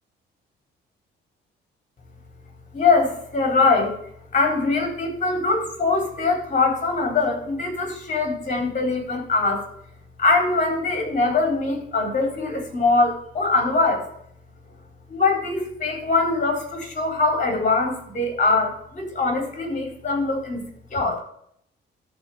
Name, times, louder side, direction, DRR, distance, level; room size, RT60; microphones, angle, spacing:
voice 1, 2.7-4.0 4.3-9.6 10.2-14.0 15.1-20.6 20.9-21.2, left 3 dB, 40° left, 2 dB, 4.3 m, -22 dB
13.0 x 4.6 x 7.3 m, 0.69 s
cardioid pair, 90°, 20 cm